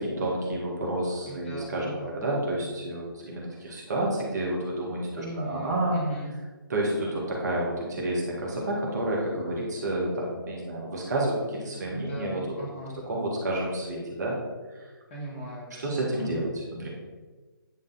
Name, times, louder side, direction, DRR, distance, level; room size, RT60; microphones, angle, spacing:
voice 1, 0.0-6.0 6.7-12.6 13.0-14.4 14.7-14.9 15.8-16.9, right 1 dB, 50° right, -3 dB, 2.0 m, -30 dB
voice 2, 1.3-2.2 5.2-6.3 11.9-13.0 15.1-15.9 16.2-16.5, right 1 dB, 30° left, -5 dB, 2.2 m, -38 dB
10.0 x 3.6 x 4.2 m, 1.3 s
figure-of-eight pair, 140°, 12 cm